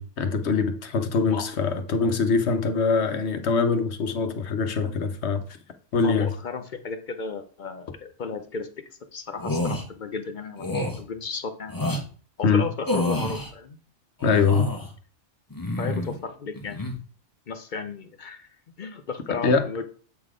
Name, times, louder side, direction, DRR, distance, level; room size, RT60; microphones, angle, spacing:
voice 1, 0.0-5.4 5.9-6.4 12.4-12.7 14.2-14.7 19.3-19.7, left 4 dB, 70° left, 1.1 m, -23 dB
voice 2, 6.0-8.7 9.1-11.8 12.4-13.8 15.8-17.0 17.5-18.5 18.8-19.8, left 5 dB, 50° left, 0.7 m, -34 dB
sound 1, 9.4-9.8 10.6-11.0 11.7-12.0 12.9-13.5 14.2-14.9 15.5-16.2 16.5-16.9, left 1 dB, 20° left, 1.1 m, -28 dB
8.1 x 3.9 x 4.9 m
omnidirectional pair, 1.2 m